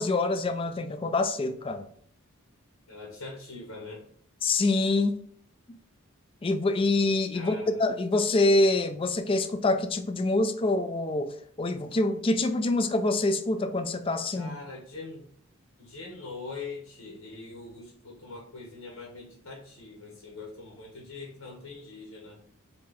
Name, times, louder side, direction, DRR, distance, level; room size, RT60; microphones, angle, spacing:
voice 1, 0.0-1.9 4.4-5.2 6.4-14.5, left 2 dB, 25° left, 0.3 m, -26 dB
voice 2, 2.9-4.0 7.3-7.8 14.3-15.2 15.8-22.4, left 3 dB, 85° left, 1.1 m, -42 dB
4.1 x 2.9 x 3.7 m
head